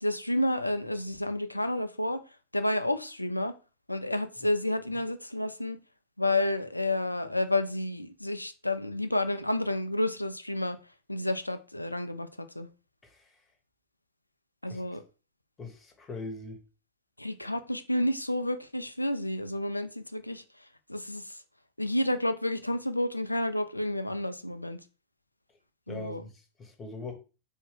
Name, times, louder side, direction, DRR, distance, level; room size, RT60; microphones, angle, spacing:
voice 1, 0.0-2.2 2.5-3.5 3.9-5.8 6.2-10.8 11.1-12.7 14.6-15.0 17.2-20.4 20.9-21.4 21.8-24.8 25.9-26.2, left 1 dB, 85° left, 0.4 m, -30 dB
voice 2, 13.0-13.3 14.7-14.8 15.6-16.6 25.9-27.1, left 2 dB, 20° left, 1.1 m, -41 dB
4.2 x 2.6 x 3.8 m
figure-of-eight pair, 90°, 0 cm